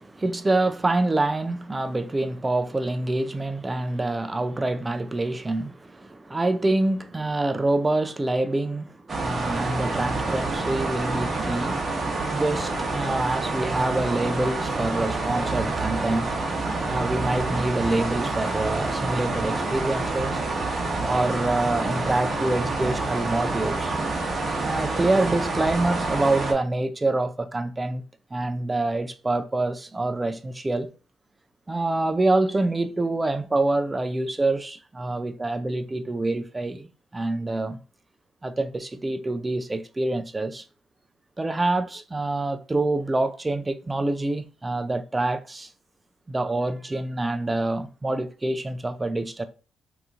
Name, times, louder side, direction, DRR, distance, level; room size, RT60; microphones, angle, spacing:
voice 1, 0.0-11.8 12.3-16.3 16.8-20.4 21.0-23.9 24.6-28.0 28.3-30.9 31.7-37.8 38.4-40.6 41.4-45.7 46.3-49.4, right 2 dB, 20° right, 0.4 m, -26 dB
sound 1, 9.1-26.5, right 3 dB, 35° right, 1.0 m, -27 dB
2.9 x 2.5 x 3.6 m
cardioid pair, 90°, 0 cm